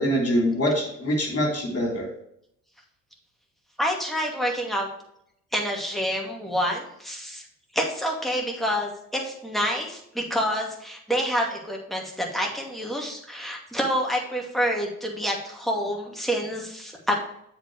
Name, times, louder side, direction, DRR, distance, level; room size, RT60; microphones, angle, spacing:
voice 1, 0.0-2.1, equal, 30° left, 0 dB, 3.5 m, -24 dB
voice 2, 3.8-4.9 5.5-7.4 7.7-17.2, equal, ahead, -1 dB, 2.4 m, -27 dB
7.5 x 5.1 x 4.9 m, 0.73 s
hypercardioid pair, 55°, 44 cm